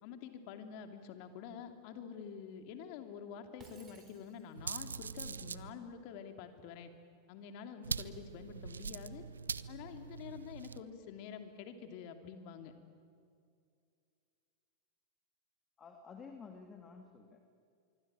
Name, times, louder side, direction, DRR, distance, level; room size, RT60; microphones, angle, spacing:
voice 1, 0.0-6.9 7.3-9.2 9.7-12.7, left 7 dB, 55° left, 6 dB, 2.8 m, -48 dB
Shatter, 3.6-4.8, right 5 dB, 30° right, 5.5 m, -60 dB
sound 1, 4.6-5.7 7.8-10.8, right 5 dB, 85° right, 0.7 m, -42 dB
voice 2, 15.8-17.4, left 5 dB, 25° left, 5 dB, 2.4 m, -52 dB
25.0 x 24.0 x 9.0 m, 2.4 s
hypercardioid pair, 90°, 0 cm